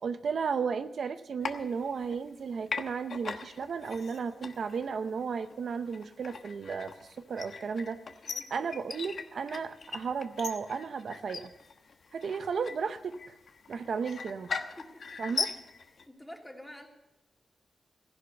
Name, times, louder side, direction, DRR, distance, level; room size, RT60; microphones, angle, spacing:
voice 1, 0.0-8.0 8.5-11.5 12.1-13.3 13.7-14.5 15.2-15.5, right 5 dB, 70° right, 10 dB, 0.6 m, -34 dB
sound 1, 1.4-2.4 2.7-16.0, left 5 dB, 65° left, 1.1 m, -40 dB
voice 2, 8.3-8.8 14.8-15.0 15.5-15.6 15.9-16.9, left 1 dB, 10° left, 1 dB, 2.7 m, -48 dB
15.0 x 11.0 x 6.7 m, 0.94 s
wide cardioid pair, 95°, 0 cm